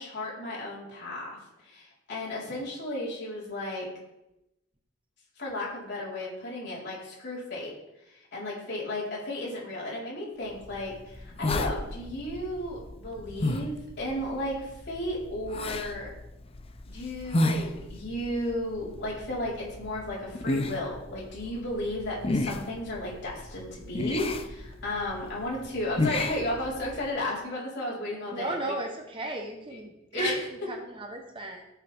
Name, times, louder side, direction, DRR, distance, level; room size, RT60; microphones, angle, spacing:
voice 1, 0.0-3.9 5.4-7.7 8.1-16.1 16.9-28.7 29.7-29.8 30.1-30.5, left 1 dB, 50° left, -5 dB, 4.5 m, -34 dB
sound 1, 10.5-27.1, left 2 dB, 25° left, 0.6 m, -34 dB
voice 2, 28.3-31.6, right 2 dB, 25° right, 3 dB, 1.1 m, -36 dB
17.5 x 6.9 x 3.6 m, 0.91 s
head